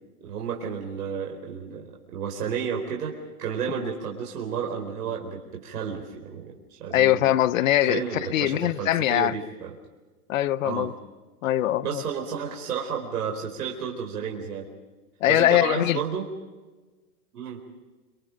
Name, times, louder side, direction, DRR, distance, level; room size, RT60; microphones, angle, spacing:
voice 1, 0.2-3.1 3.4-7.4 7.9-9.7 10.6-10.9 11.8-14.7 15.3-16.3 17.3-17.6, right 7 dB, 75° right, 4.4 m, -32 dB
voice 2, 6.9-9.3 10.3-10.9 11.4-12.0 15.2-16.0, left 13 dB, 55° left, 0.8 m, -22 dB
28.5 x 26.0 x 5.2 m
hypercardioid pair, 145°, 47 cm